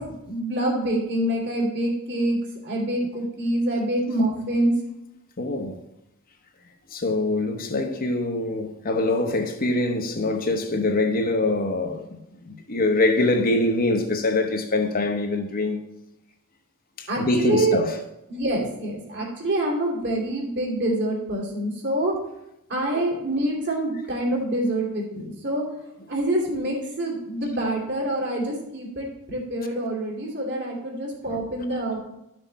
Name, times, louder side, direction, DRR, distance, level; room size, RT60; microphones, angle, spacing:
voice 1, 0.0-2.4 2.6-4.7 17.1-17.8 18.3-22.2 22.7-25.6 26.1-32.0, right 1 dB, 55° right, 3.1 m, -26 dB
voice 2, 5.4-5.8 6.9-15.8 17.0-18.0 22.9-23.0 31.3-31.4, left 2 dB, 40° left, 1.1 m, -24 dB
12.0 x 6.3 x 4.2 m
head